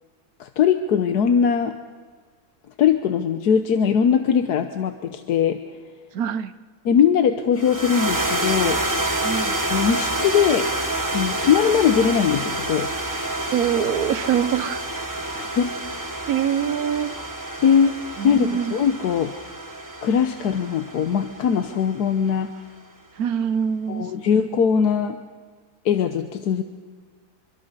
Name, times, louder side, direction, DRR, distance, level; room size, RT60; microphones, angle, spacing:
voice 1, 0.4-1.7 2.8-5.6 6.8-8.8 9.7-10.7 11.1-12.9 15.4-15.7 17.6-17.9 18.2-19.3 20.0-22.5 23.9-25.2 25.8-26.6, left 7 dB, 85° left, 7 dB, 1.4 m, -20 dB
voice 2, 6.1-6.5 9.2-9.6 13.5-14.8 16.3-17.1 18.2-18.8 23.2-24.1, right 8 dB, 70° right, 13 dB, 1.3 m, -24 dB
sound 1, 7.6-22.0, right 2 dB, 15° right, 1.4 m, -28 dB
25.0 x 24.5 x 5.5 m, 1.6 s
omnidirectional pair, 1.7 m